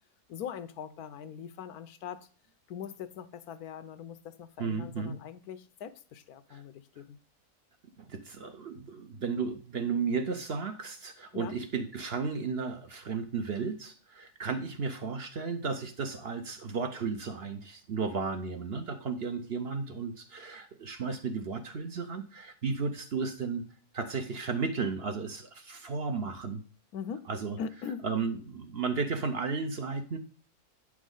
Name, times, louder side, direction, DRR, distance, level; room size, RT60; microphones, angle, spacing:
voice 1, 0.3-2.3 2.7-7.2 11.3-11.6 26.9-27.3 27.6-28.1, left 7 dB, 80° left, 1.2 m, -41 dB
voice 2, 4.6-5.2 6.5-6.6 8.0-23.6 23.9-26.6 27.3-27.6 28.0-30.2, right 5 dB, 50° right, 0.9 m, -34 dB
9.0 x 6.2 x 3.8 m
omnidirectional pair, 1.6 m